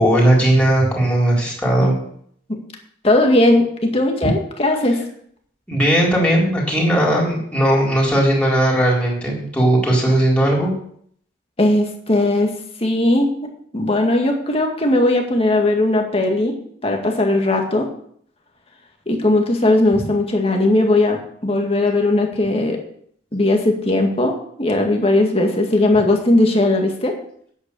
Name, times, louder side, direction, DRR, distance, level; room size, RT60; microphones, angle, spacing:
voice 1, 0.0-2.0 5.7-10.7, right 1 dB, 5° left, -4 dB, 4.0 m, -17 dB
voice 2, 3.0-5.0 11.6-12.5 12.8-16.6 16.8-17.9 19.1-21.2 21.4-22.8 23.3-27.1, left 2 dB, 30° left, 2 dB, 2.1 m, -18 dB
9.8 x 8.5 x 6.9 m, 0.64 s
head